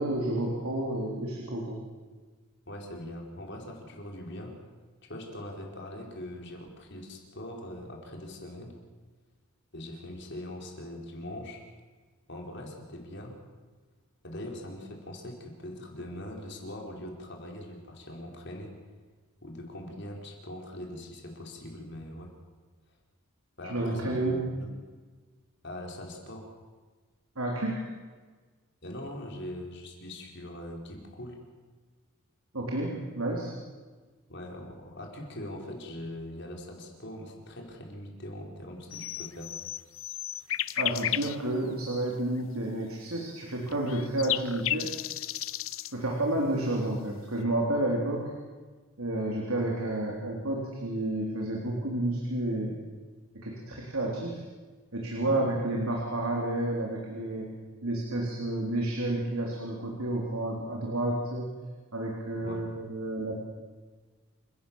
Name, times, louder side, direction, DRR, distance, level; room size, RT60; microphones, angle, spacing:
voice 1, 0.0-1.8 23.7-24.4 27.4-27.8 32.5-33.5 40.8-44.9 45.9-48.3 49.0-52.8 53.3-54.4 54.9-57.5 57.8-61.5 61.9-63.3, right 1 dB, 85° right, -1 dB, 3.7 m, -30 dB
voice 2, 2.6-4.5 5.0-8.7 9.7-11.6 12.3-13.4 14.2-18.7 19.4-22.3 23.6-24.7 25.6-26.5 28.8-31.4 34.3-39.5 55.2-55.4 62.4-62.6, left 1 dB, 55° left, 1 dB, 4.9 m, -42 dB
sound 1, 38.9-41.4 41.9-42.0 43.5-45.9, left 13 dB, 70° left, 0.6 m, -33 dB
28.5 x 16.5 x 7.3 m, 1.4 s
head